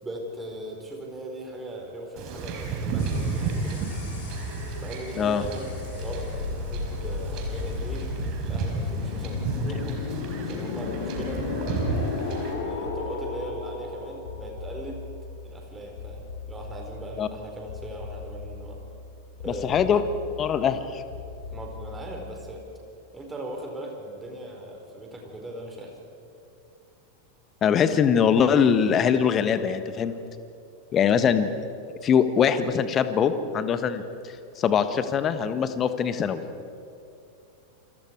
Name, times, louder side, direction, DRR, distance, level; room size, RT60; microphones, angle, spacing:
voice 1, 0.0-3.8 4.8-8.1 8.4-10.1 10.4-11.4 12.4-15.0 15.4-18.8 19.4-20.0 21.5-22.6 23.1-26.0, right 1 dB, 10° right, 1 dB, 4.6 m, -39 dB
Wind / Ocean / Boat Water vehicle, 2.2-12.5, right 4 dB, 40° right, 4.4 m, -32 dB
sound 1, 3.0-22.6, left 4 dB, 55° left, 3.4 m, -35 dB
voice 2, 19.6-20.0 20.4-21.0 27.6-30.1 30.9-31.5 32.0-34.0 34.6-36.4, left 7 dB, 25° left, 11 dB, 1.4 m, -22 dB
29.0 x 26.0 x 4.8 m, 2.6 s
figure-of-eight pair, 90°, 0 cm